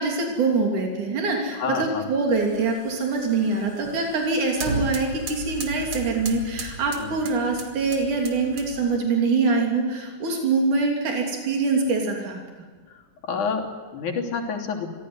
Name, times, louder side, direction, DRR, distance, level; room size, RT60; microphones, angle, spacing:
voice 1, 0.0-12.4, right 3 dB, 85° right, 1 dB, 4.6 m, -24 dB
voice 2, 1.5-2.1 7.0-7.2 12.9-13.0 13.2-14.9, left 5 dB, 80° left, 1 dB, 4.6 m, -29 dB
sound 1, 2.3-9.0, right 1 dB, 45° right, 3.1 m, -36 dB
25.5 x 17.0 x 9.7 m, 1.4 s
omnidirectional pair, 3.4 m